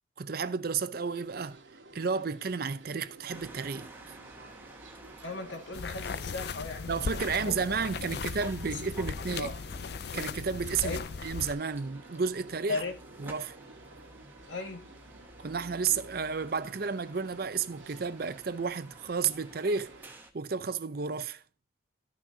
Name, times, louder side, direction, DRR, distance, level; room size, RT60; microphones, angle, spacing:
voice 1, 0.2-1.6 1.9-4.2 6.9-9.5 10.1-12.8 13.2-13.6 15.4-19.9 20.3-21.4, right 5 dB, 50° right, 0.6 m, -32 dB
sound 1, 1.0-20.1, right 2 dB, 90° right, 1.7 m, -53 dB
sound 2, 3.3-20.3, right 2 dB, 10° right, 1.1 m, -52 dB
voice 2, 5.2-7.0 7.3-7.7 8.7-9.1 9.4-9.5 10.8-11.0 12.7-12.9 14.5-14.9, left 3 dB, 75° left, 1.9 m, -36 dB
sound 3, 5.7-11.5, left 5 dB, 55° left, 0.4 m, -37 dB
13.0 x 6.2 x 2.7 m
head